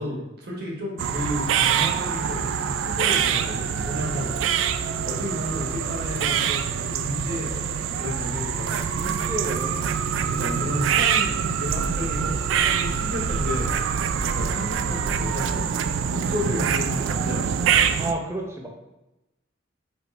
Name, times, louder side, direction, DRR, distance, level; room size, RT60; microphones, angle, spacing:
voice 1, 0.0-4.8 5.0-8.9 10.2-12.3 12.8-13.7 14.2-15.7 16.1-17.6, left 1 dB, 55° right, -2 dB, 1.2 m, -32 dB
sound 1, 1.0-18.1, right 7 dB, 90° right, 0.3 m, -25 dB
voice 2, 8.8-10.0 18.0-18.7, right 2 dB, 15° right, 0 dB, 0.6 m, -32 dB
5.1 x 3.2 x 3.2 m, 0.96 s
head